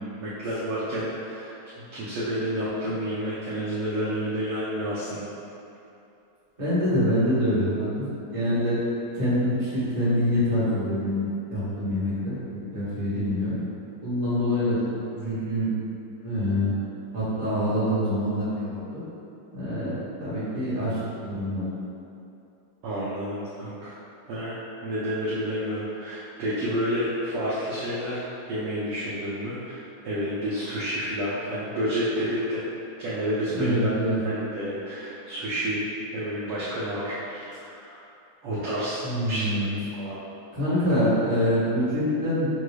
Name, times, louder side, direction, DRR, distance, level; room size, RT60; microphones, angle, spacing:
voice 1, 0.2-1.5 1.8-5.3 22.8-24.0 24.3-28.2 28.5-32.6 33.0-33.9 34.2-35.8 36.1-38.0 38.4-39.0 39.3-39.7 39.9-40.2, equal, 80° right, -9 dB, 1.2 m, -30 dB
voice 2, 6.6-7.9 8.3-8.8 9.1-12.3 12.7-13.5 14.0-15.7 16.2-16.7 17.1-19.0 19.5-21.7 33.5-34.2 39.0-39.6 40.5-42.5, equal, 45° right, -12 dB, 0.5 m, -25 dB
6.2 x 3.2 x 2.2 m, 2.8 s
omnidirectional pair, 3.4 m